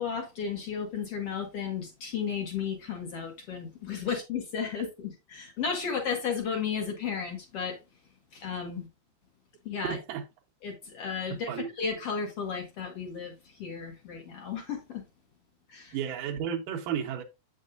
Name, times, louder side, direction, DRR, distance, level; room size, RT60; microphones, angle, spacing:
voice 1, 0.0-7.8 8.3-8.9 9.6-10.0 10.6-15.0 15.7-16.0, left 6 dB, 60° left, 1.6 m, -34 dB
voice 2, 9.9-10.2 11.5-11.7 15.9-17.2, right 8 dB, 75° right, 2.0 m, -33 dB
8.3 x 6.2 x 2.4 m
omnidirectional pair, 4.7 m